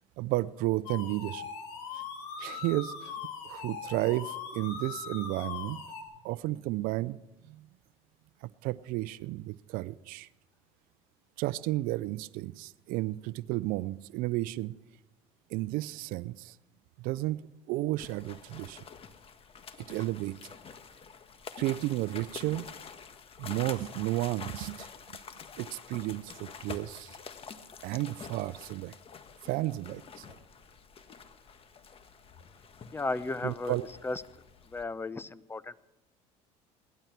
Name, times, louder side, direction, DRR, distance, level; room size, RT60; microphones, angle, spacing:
voice 1, 0.2-1.5 1.9-2.0 2.4-3.1 3.4-5.8 6.2-7.2 7.4-7.7 8.4-10.3 11.4-14.7 15.5-16.6 17.0-17.4 17.7-18.8 19.9-20.3 21.6-22.7 23.4-25.2 25.6-27.2 27.8-28.9 29.4-30.2 33.4-33.9, right 17 dB, 70° right, 18 dB, 0.5 m, -32 dB
sound 1, 0.9-6.0, left 6 dB, 85° left, 3.5 m, -40 dB
sound 2, 18.0-34.8, left 6 dB, 40° left, 1.4 m, -47 dB
voice 2, 32.9-34.2 34.6-35.8, left 3 dB, 15° left, 17 dB, 0.7 m, -35 dB
18.5 x 12.5 x 5.9 m, 0.95 s
supercardioid pair, 90°, 15 cm